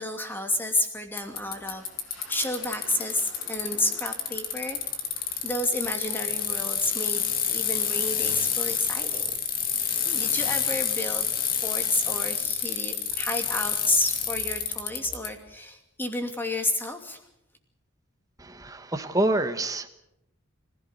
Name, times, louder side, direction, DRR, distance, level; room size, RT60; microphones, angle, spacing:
voice 1, 0.0-1.8 2.3-4.8 5.4-9.2 10.1-11.3 11.6-17.2, left 1 dB, 10° left, 5 dB, 2.6 m, -30 dB
Bicycle, 1.2-15.3, left 8 dB, 45° left, 2.4 m, -28 dB
sound 1, 1.3-8.6, left 2 dB, 85° left, 8.0 m, -52 dB
voice 2, 18.4-19.9, right 2 dB, 15° right, 8 dB, 1.3 m, -27 dB
26.0 x 16.0 x 8.1 m, 0.80 s
head